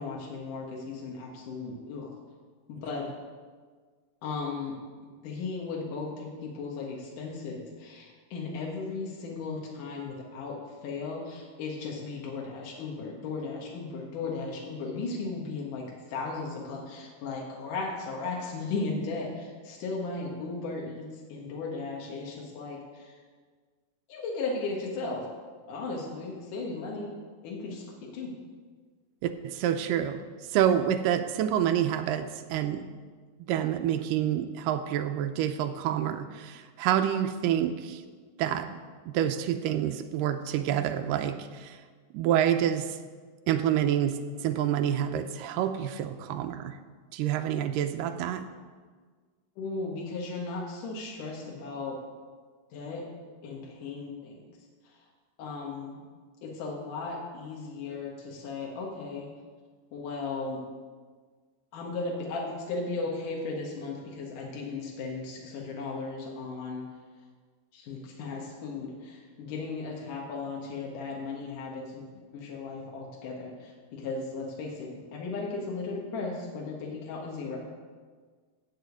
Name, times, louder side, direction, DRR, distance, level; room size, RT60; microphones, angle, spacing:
voice 1, 0.0-2.1 2.7-3.1 4.2-4.8 5.2-23.1 24.1-25.3 25.7-27.1 27.4-28.3 49.6-52.0 52.7-53.1 53.4-54.4 54.8-55.0 55.4-56.0 56.4-59.3 59.9-60.6 61.7-66.8 67.7-72.0 72.3-77.7, left 3 dB, 75° left, -2 dB, 3.0 m, -36 dB
voice 2, 29.2-32.8 33.5-38.0 38.4-38.8 39.1-41.8 42.1-43.0 43.5-46.8 47.1-48.5, right 10 dB, 85° right, 8 dB, 2.2 m, -28 dB
14.0 x 5.0 x 8.1 m, 1.5 s
omnidirectional pair, 3.8 m